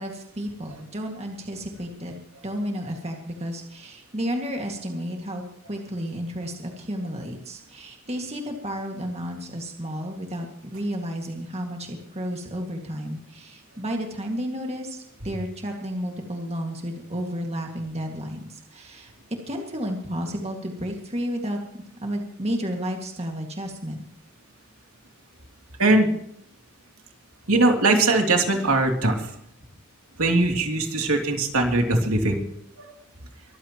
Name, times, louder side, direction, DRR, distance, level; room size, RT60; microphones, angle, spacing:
voice 1, 0.0-2.1 2.4-19.1 19.5-24.0, equal, 30° right, 2 dB, 2.0 m, -32 dB
voice 2, 25.8-26.1 27.5-29.3 30.2-32.4, right 2 dB, 70° right, 2 dB, 3.0 m, -20 dB
23.5 x 15.0 x 3.0 m, 0.69 s
head